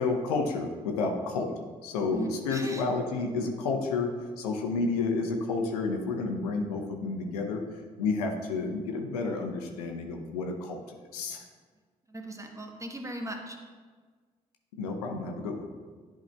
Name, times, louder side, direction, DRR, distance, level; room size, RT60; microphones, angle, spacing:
voice 1, 0.0-1.5 1.8-7.6 8.0-10.8 11.1-11.4 14.7-15.7, left 3 dB, 75° left, 2 dB, 0.7 m, -30 dB
voice 2, 2.1-2.8 12.1-13.6, right 1 dB, 15° right, 3 dB, 1.0 m, -38 dB
10.5 x 4.7 x 2.2 m, 1.5 s
figure-of-eight pair, 40°, 20 cm